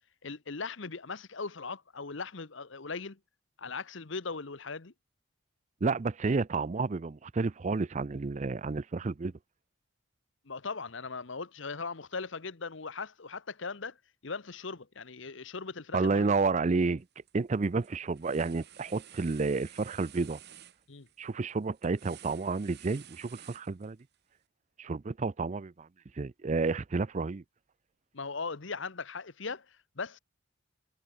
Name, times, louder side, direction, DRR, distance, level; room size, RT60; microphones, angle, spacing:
voice 1, 0.2-3.2 3.6-4.9 10.4-14.0 14.2-16.3 20.9-21.1 28.1-30.2, left 4 dB, 60° left, 1.1 m, -39 dB
voice 2, 5.8-9.3 15.9-17.0 17.3-20.4 21.2-24.0 24.8-25.9 26.2-27.4, right 4 dB, 35° right, 0.4 m, -30 dB
sound 1, 17.0-17.3 17.6-24.2, right 10 dB, 50° right, 3.1 m, -53 dB
head